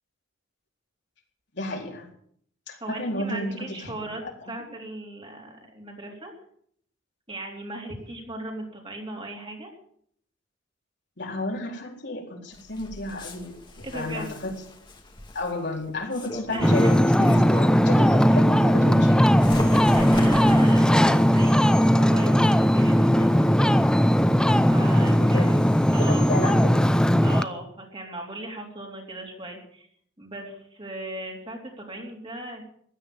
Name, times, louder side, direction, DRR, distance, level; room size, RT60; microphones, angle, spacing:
voice 1, 1.5-2.1 2.7-4.0 4.2-4.6 11.2-14.5 15.3-17.3 17.8-19.2 25.0-25.6 26.0-26.9, left 1 dB, 60° left, 0 dB, 4.2 m, -32 dB
voice 2, 2.8-4.2 4.5-6.3 7.3-9.7 13.8-14.3 16.5-16.9 19.5-23.5 24.7-25.6 25.9-26.2 27.2-29.9 30.2-32.6, right 1 dB, 25° right, 0 dB, 3.5 m, -37 dB
Bird, 12.5-18.0 18.4-26.1, left 1 dB, 25° left, 2.3 m, -37 dB
Ocean, 16.6-27.4, equal, 5° left, 0.6 m, -19 dB
16.0 x 12.0 x 7.0 m, 0.65 s
head